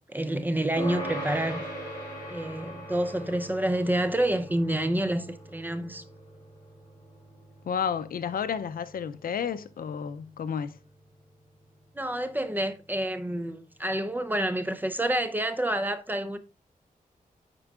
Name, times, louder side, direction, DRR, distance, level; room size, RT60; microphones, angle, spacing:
voice 1, 0.1-1.6 2.3-6.0 12.0-16.4, right 1 dB, 10° right, 0.6 m, -28 dB
sound 1, 0.8-10.4, right 1 dB, 25° left, 2.7 m, -41 dB
voice 2, 7.7-10.8, left 7 dB, 75° left, 0.5 m, -31 dB
9.9 x 4.5 x 2.4 m
wide cardioid pair, 110°, 15 cm